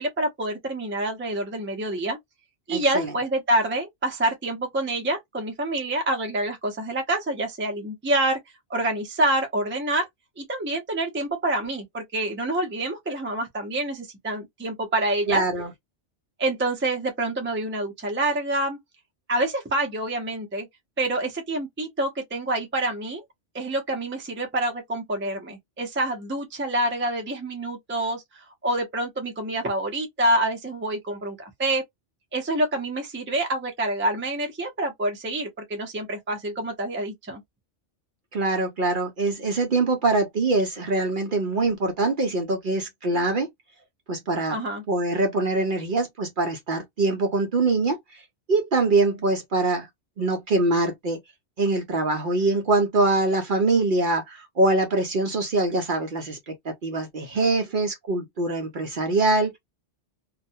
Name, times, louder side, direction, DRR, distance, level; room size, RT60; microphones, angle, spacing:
voice 1, 0.0-2.2 2.7-8.4 8.7-10.1 10.4-15.4 16.4-18.8 19.3-20.7 21.0-23.2 23.5-31.8 32.3-37.4 44.5-44.8, right 1 dB, 15° right, 0.4 m, -27 dB
voice 2, 2.7-3.1 15.3-15.7 38.3-43.5 44.1-44.6 44.9-48.2 48.5-49.9 50.2-51.2 51.6-59.6, right 2 dB, 55° right, 0.6 m, -23 dB
2.3 x 2.1 x 2.6 m
omnidirectional pair, 1.2 m